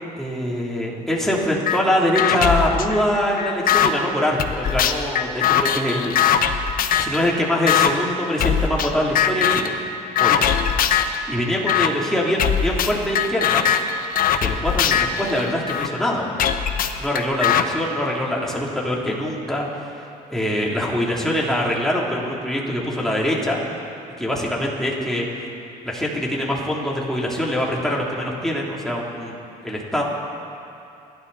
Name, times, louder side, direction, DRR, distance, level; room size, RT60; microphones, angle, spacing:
voice 1, 0.2-6.2 6.4-6.5 7.0-9.7 10.1-10.4 11.1-13.7 14.4-16.4 17.0-23.6 24.2-25.3 25.8-29.3 29.6-30.0, left 1 dB, 5° left, -4 dB, 3.2 m, -24 dB
sound 1, 1.7-1.8 2.2-3.9 4.4-7.2 7.7-7.9 8.4-8.9 9.2-9.7 10.2-11.2 11.7-11.9 12.4-15.9 16.4-17.6, left 9 dB, 55° left, 1.0 m, -20 dB
28.5 x 12.0 x 4.2 m, 2.7 s
cardioid pair, 110°, 17 cm